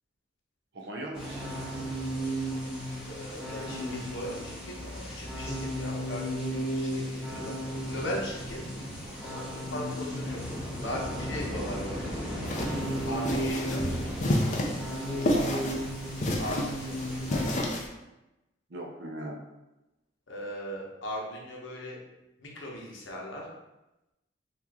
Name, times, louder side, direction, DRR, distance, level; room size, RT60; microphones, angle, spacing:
voice 1, 0.7-1.9 13.4-13.5 15.3-15.9 18.7-19.4, right 1 dB, 55° right, 0 dB, 0.6 m, -40 dB
sound 1, 1.1-17.6, equal, 5° right, 0.7 m, -34 dB
voice 2, 3.1-7.6 7.9-8.6 9.2-9.4 9.7-10.4 10.8-12.1 13.1-14.1 16.4-17.0 20.3-22.0 22.4-23.5, equal, 85° left, -2 dB, 0.8 m, -38 dB
sound 2, 12.4-17.9, left 1 dB, 40° left, 0.4 m, -31 dB
2.9 x 2.4 x 3.5 m, 0.97 s
head